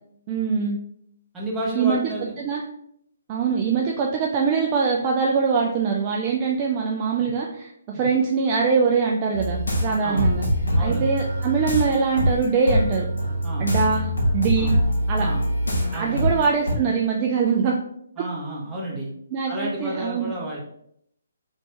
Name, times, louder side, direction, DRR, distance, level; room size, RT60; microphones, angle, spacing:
voice 1, 0.3-0.8 1.8-2.0 2.4-2.6 3.3-10.4 10.8-13.1 13.6-14.1 14.3-14.8 15.1-15.3 15.9-17.7 19.3-20.3, right 5 dB, 30° right, -1 dB, 0.4 m, -23 dB
voice 2, 1.3-2.4 7.2-7.3 7.9-8.1 10.0-10.3 10.7-11.1 13.4-13.7 14.6-14.7 15.2-15.4 15.9-16.3 18.2-19.1 19.5-20.6, right 1 dB, 10° right, -6 dB, 1.1 m, -31 dB
sound 1, 9.3-16.8, equal, 80° left, 1.3 m, -24 dB
3.1 x 2.7 x 3.3 m, 0.73 s
figure-of-eight pair, 140°, 0 cm